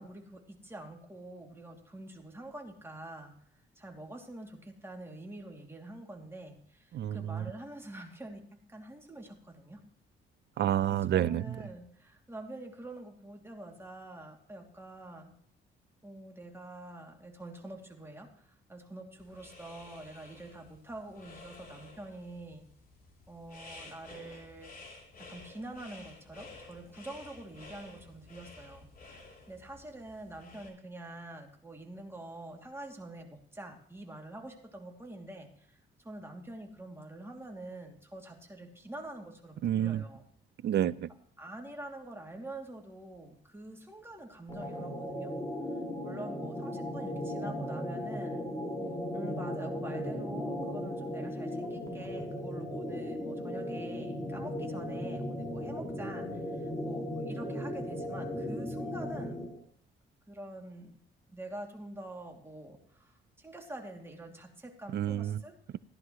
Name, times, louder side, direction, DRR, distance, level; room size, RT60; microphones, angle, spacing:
voice 1, 0.0-3.3 3.8-9.8 10.9-15.3 16.0-22.7 23.3-24.7 25.2-40.2 41.4-45.3 46.0-48.5 49.1-59.4 60.3-61.0 61.3-65.6, right 1 dB, 10° right, 2.6 m, -46 dB
voice 2, 6.9-7.5 10.6-11.6 39.6-40.0 40.6-41.1 64.9-65.4, right 11 dB, 60° right, 0.5 m, -29 dB
sound 1, 19.2-30.7, left 3 dB, 45° left, 3.4 m, -52 dB
sound 2, 44.5-59.6, left 1 dB, 20° left, 2.4 m, -37 dB
15.0 x 11.0 x 3.1 m
cardioid pair, 90°, 20 cm